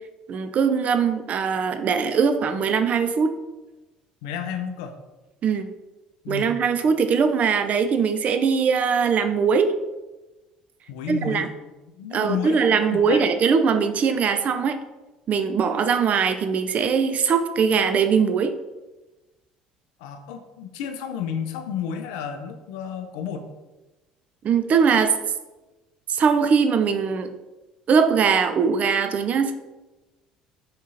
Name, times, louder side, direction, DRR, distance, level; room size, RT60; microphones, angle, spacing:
voice 1, 0.3-3.4 5.4-5.7 6.3-9.7 11.1-11.5 12.1-14.8 15.3-18.6 24.4-25.2 26.1-27.3 27.9-29.5, right 6 dB, 40° right, 9 dB, 0.3 m, -21 dB
voice 2, 4.2-5.0 6.2-6.5 10.9-11.5 11.9-13.3 20.0-23.5, left 7 dB, 65° left, 7 dB, 0.4 m, -31 dB
3.6 x 3.5 x 2.9 m, 1.1 s
figure-of-eight pair, 55°, 4 cm